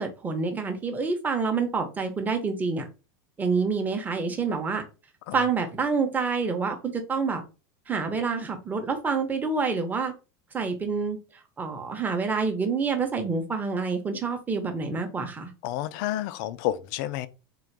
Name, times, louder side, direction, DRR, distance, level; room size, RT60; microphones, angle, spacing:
voice 1, 0.0-2.8 3.4-4.8 5.3-7.4 7.9-10.1 10.5-11.2 11.6-15.5, right 4 dB, 15° right, 0.8 m, -27 dB
voice 2, 15.6-17.3, left 13 dB, 60° left, 0.5 m, -30 dB
3.8 x 2.4 x 4.6 m
supercardioid pair, 150°, 12 cm